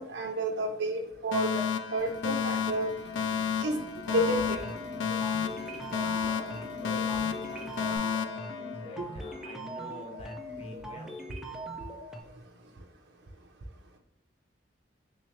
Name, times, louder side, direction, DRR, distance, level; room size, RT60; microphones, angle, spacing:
voice 1, 0.0-1.6 1.9-2.9 3.6-3.8 4.1-4.6 9.0-9.1, right 1 dB, 60° right, 1 dB, 0.5 m, -30 dB
Alarm, 1.3-9.3, left 7 dB, 80° left, 0.3 m, -32 dB
Drill, 2.0-8.0, left 1 dB, 65° left, 1.1 m, -50 dB
sound 1, 4.1-12.2, right 1 dB, ahead, 0.4 m, -41 dB
voice 2, 5.5-5.8 6.2-11.2, left 1 dB, 30° left, 1 dB, 0.7 m, -48 dB
3.5 x 2.9 x 3.1 m, 0.86 s
head